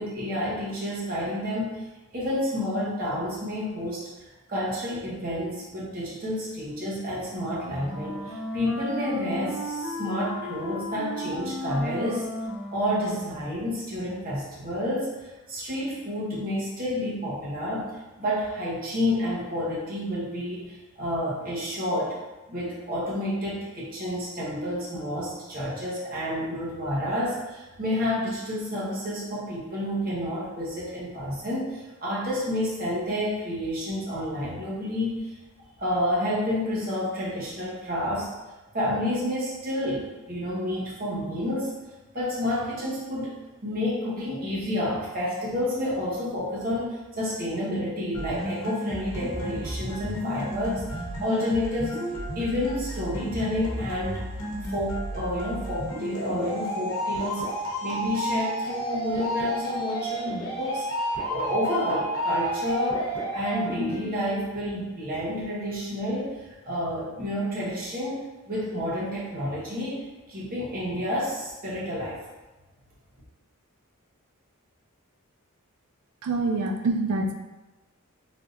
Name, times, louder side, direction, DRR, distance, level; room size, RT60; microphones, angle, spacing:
voice 1, 0.0-1.7 2.1-4.0 4.5-12.3 12.7-22.2 22.5-35.4 35.8-38.3 38.7-41.7 42.1-43.3 43.6-52.0 52.3-54.2 54.7-57.5 57.8-63.0 63.3-72.2, left 1 dB, 40° right, -6 dB, 0.9 m, -29 dB
Wind instrument woodwind instrument, 7.4-13.5, equal, 60° right, 1.2 m, -35 dB
sound 1, 48.1-64.2, equal, 70° left, 0.9 m, -32 dB
voice 2, 76.2-77.3, right 3 dB, 85° right, 4 dB, 0.4 m, -25 dB
3.4 x 2.7 x 2.4 m, 1.1 s
head